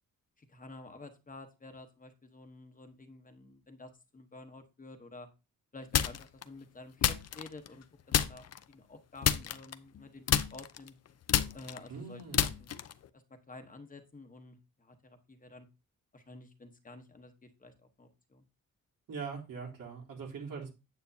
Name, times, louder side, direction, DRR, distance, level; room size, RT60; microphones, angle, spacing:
voice 1, 0.4-5.3 5.7-10.9 11.5-12.7 13.1-15.7 16.1-18.4, left 2 dB, 25° left, 6 dB, 1.1 m, -51 dB
sound 1, 5.9-6.4 7.0-7.8 8.1-8.6 9.2-10.0 10.3-13.1, left 9 dB, 50° left, 0.6 m, -29 dB
voice 2, 11.9-12.5 19.1-20.7, right 5 dB, 85° right, -1 dB, 3.4 m, -42 dB
9.3 x 8.0 x 2.7 m, 0.27 s
wide cardioid pair, 150°, 32 cm